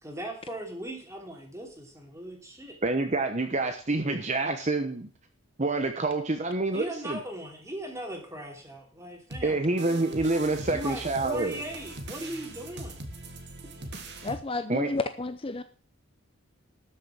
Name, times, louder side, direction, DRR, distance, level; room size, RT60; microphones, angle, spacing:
voice 1, 0.0-2.8 6.7-9.6 10.7-13.0, right 1 dB, 15° right, 3.1 m, -39 dB
voice 2, 2.8-5.1 5.6-7.2 9.4-11.6 14.7-14.9, right 2 dB, 35° right, 1.0 m, -27 dB
sound 1, 9.3-14.4, right 2 dB, 50° right, 1.7 m, -41 dB
voice 3, 14.2-15.6, left 3 dB, 25° left, 0.6 m, -31 dB
13.0 x 6.6 x 7.2 m
head